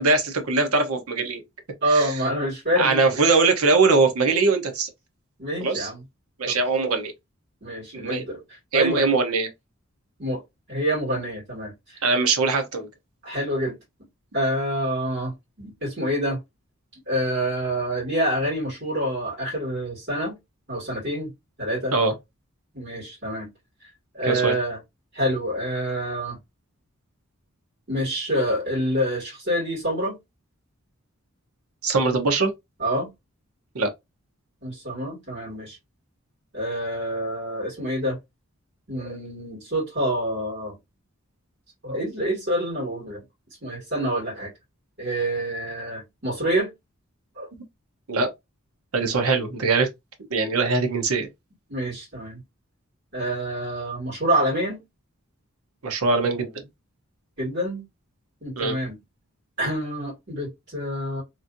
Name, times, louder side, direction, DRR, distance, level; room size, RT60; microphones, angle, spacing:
voice 1, 0.0-1.4 1.9-2.1 2.8-4.9 5.6-5.9 6.4-7.1 7.9-8.3 8.7-9.5 12.0-12.9 21.9-22.1 24.3-24.5 31.8-32.5 33.7-33.9 48.1-48.3 48.9-49.9 50.3-51.3 55.8-56.6 58.6-58.8, right 3 dB, 85° right, 0.9 m, -21 dB
voice 2, 1.8-3.0 5.4-6.0 6.4-6.6 7.6-9.0 10.2-10.4 10.7-12.1 13.2-13.8 14.3-16.4 17.1-20.4 20.7-21.3 21.6-22.0 22.7-23.5 23.8-23.9 24.1-24.8 25.1-26.4 27.9-30.2 32.8-33.1 34.6-35.8 36.5-38.2 38.9-40.8 41.8-43.2 43.6-44.5 45.0-46.7 47.4-47.5 51.7-52.4 53.1-54.8 57.4-57.8 58.4-59.0 59.6-61.2, right 1 dB, 50° right, 1.9 m, -27 dB
3.0 x 2.6 x 2.5 m
head